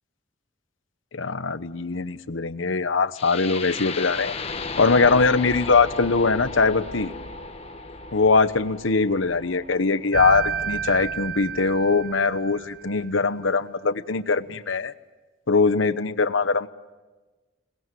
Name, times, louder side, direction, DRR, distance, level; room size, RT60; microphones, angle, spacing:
voice 1, 1.1-4.3 4.8-7.1 8.1-14.9 15.5-16.7, left 4 dB, 85° left, 12 dB, 1.1 m, -22 dB
sound 1, 3.2-11.2, left 3 dB, 30° left, 1.3 m, -35 dB
sound 2, 10.1-13.0, right 7 dB, 50° right, 1.5 m, -31 dB
28.5 x 20.5 x 9.3 m, 1.2 s
head